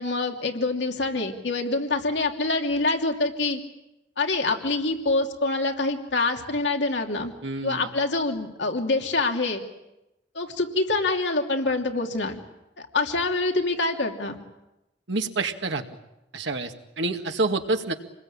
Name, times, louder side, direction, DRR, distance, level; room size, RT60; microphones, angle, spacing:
voice 1, 0.0-3.6 4.2-7.3 7.6-9.6 10.3-12.4 12.8-14.4, left 3 dB, 85° left, 3 dB, 2.8 m, -25 dB
voice 2, 7.4-7.9 15.1-15.8 16.3-17.9, right 3 dB, 90° right, 5 dB, 2.1 m, -28 dB
27.0 x 21.0 x 8.8 m, 0.93 s
head